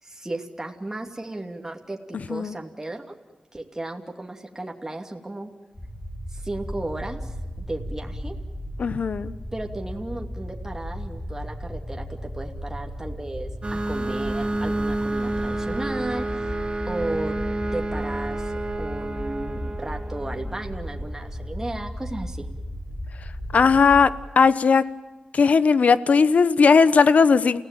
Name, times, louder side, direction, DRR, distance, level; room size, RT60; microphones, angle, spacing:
voice 1, 0.0-3.1 3.5-5.5 6.3-8.3 9.5-17.3 17.7-22.5, right 2 dB, 20° right, 2 dB, 2.6 m, -34 dB
sound 1, 5.7-24.1, equal, 40° left, 6.9 m, -35 dB
voice 2, 8.8-9.3 23.5-24.1 24.4-24.8 25.3-27.6, left 5 dB, 75° left, 15 dB, 1.0 m, -17 dB
sound 2, 13.6-21.0, right 2 dB, 45° right, 3.5 m, -30 dB
29.0 x 17.0 x 9.0 m, 1.2 s
cardioid pair, 55°, 2 cm